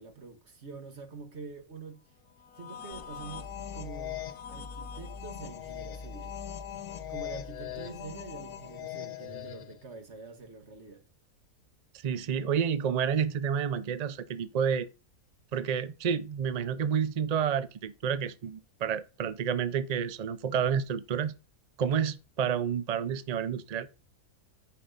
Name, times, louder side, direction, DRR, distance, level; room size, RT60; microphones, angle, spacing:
voice 1, 0.0-2.0 2.6-6.4 7.0-11.0, right 4 dB, 50° right, 1.8 m, -46 dB
sound 1, 2.5-9.8, left 11 dB, 80° left, 1.4 m, -41 dB
sound 2, 2.9-8.8, left 2 dB, 20° left, 3.6 m, -47 dB
voice 2, 12.0-14.9 15.5-21.3 21.8-23.9, right 7 dB, 80° right, 0.3 m, -29 dB
10.0 x 4.7 x 5.5 m
omnidirectional pair, 1.6 m